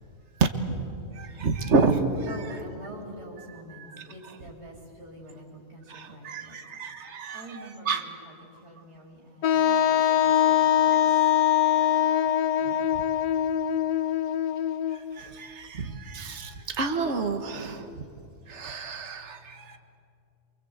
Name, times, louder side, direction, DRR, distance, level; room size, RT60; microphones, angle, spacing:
voice 1, 0.4-0.9 1.2-2.4 3.9-4.0 5.9-8.0 12.7-12.9 15.2-18.0 18.5-19.8, right 4 dB, 45° right, 6 dB, 1.8 m, -29 dB
voice 2, 2.3-6.8 7.3-11.0 16.6-16.7 18.4-19.2, right 1 dB, 70° right, -2 dB, 4.2 m, -46 dB
Wind instrument woodwind instrument, 9.4-15.2, left 10 dB, 85° left, 1.5 m, -23 dB
28.0 x 25.0 x 8.1 m, 2.5 s
omnidirectional pair, 1.7 m